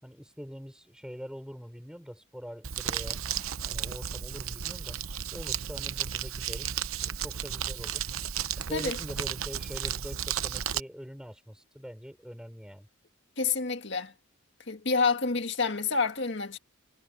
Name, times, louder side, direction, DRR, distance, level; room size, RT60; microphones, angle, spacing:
voice 1, 0.0-3.2 3.7-5.0 5.3-8.0 8.6-12.9, equal, 5° right, 6.3 m, -43 dB
Crumpling crinkling, 2.6-10.8, right 9 dB, 85° right, 0.9 m, -33 dB
voice 2, 13.4-14.1 14.7-16.6, left 4 dB, 55° left, 2.0 m, -28 dB
head